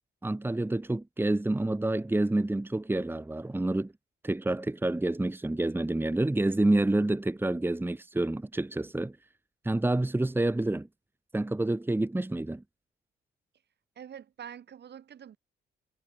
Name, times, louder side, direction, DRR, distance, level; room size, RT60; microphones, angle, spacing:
voice 1, 0.2-3.9 4.2-9.2 9.6-10.9 11.3-12.6, right 2 dB, 10° right, 1.8 m, -28 dB
voice 2, 13.9-15.4, right 9 dB, 60° right, 5.0 m, -45 dB
cardioid pair, 90°, 20 cm